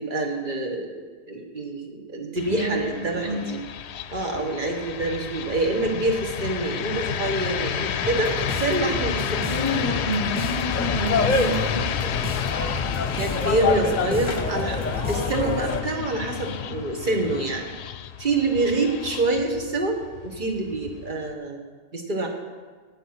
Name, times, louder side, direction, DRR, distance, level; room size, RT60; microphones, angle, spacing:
voice 1, 0.0-3.6 4.1-9.4 11.6-11.9 13.1-14.8 15.1-17.7 18.2-21.6 21.9-22.3, right 2 dB, 50° right, 2 dB, 1.5 m, -26 dB
sound 1, 2.4-21.3, left 9 dB, 85° left, 0.9 m, -31 dB
voice 2, 2.5-3.4 9.5-11.8 13.5-13.7, equal, 75° right, -8 dB, 2.7 m, -29 dB
sound 2, 8.0-15.7, left 1 dB, 5° right, 0.5 m, -35 dB
sound 3, 10.7-15.8, left 4 dB, 45° left, 0.9 m, -26 dB
16.5 x 5.7 x 5.8 m, 1.4 s
omnidirectional pair, 1.1 m